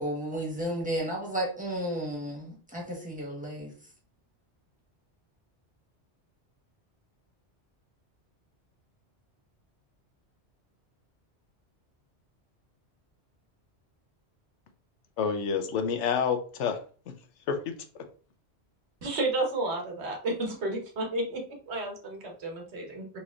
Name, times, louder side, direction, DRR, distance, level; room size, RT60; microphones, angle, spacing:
voice 1, 0.0-3.7, right 1 dB, 5° right, -3 dB, 1.3 m, -33 dB
voice 2, 15.2-16.8 17.1-17.2 17.5-17.8, left 6 dB, 90° left, 7 dB, 0.9 m, -28 dB
voice 3, 19.0-23.1, right 2 dB, 70° right, 2 dB, 1.2 m, -32 dB
4.1 x 3.1 x 2.4 m, 0.40 s
omnidirectional pair, 1.2 m